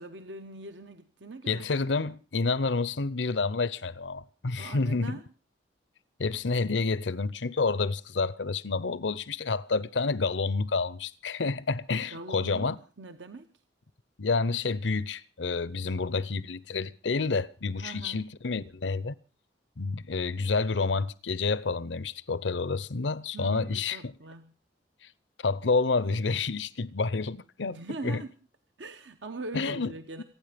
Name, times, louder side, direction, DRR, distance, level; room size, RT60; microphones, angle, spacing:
voice 1, 0.0-1.7 4.6-5.2 12.1-13.5 17.8-18.3 23.3-24.5 27.7-28.3 28.8-30.2, right 3 dB, 85° right, 1.1 m, -42 dB
voice 2, 1.5-5.2 6.2-12.8 14.2-19.1 19.8-24.1 25.4-28.2 29.5-29.9 30.2-30.3, left 4 dB, 85° left, 0.8 m, -29 dB
27.5 x 9.6 x 5.1 m
head